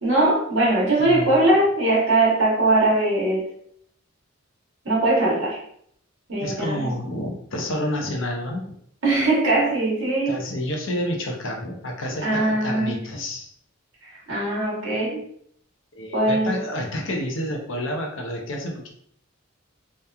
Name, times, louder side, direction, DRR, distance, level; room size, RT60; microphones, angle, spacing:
voice 1, 0.0-3.4 4.8-5.6 6.3-6.9 9.0-10.4 12.2-13.0 14.0-15.2 16.1-16.5, right 2 dB, 65° right, -4 dB, 1.0 m, -21 dB
voice 2, 1.0-1.3 6.4-8.6 10.3-13.5 15.9-18.9, left 1 dB, 60° left, 0 dB, 0.6 m, -29 dB
2.8 x 2.2 x 2.3 m, 0.67 s
head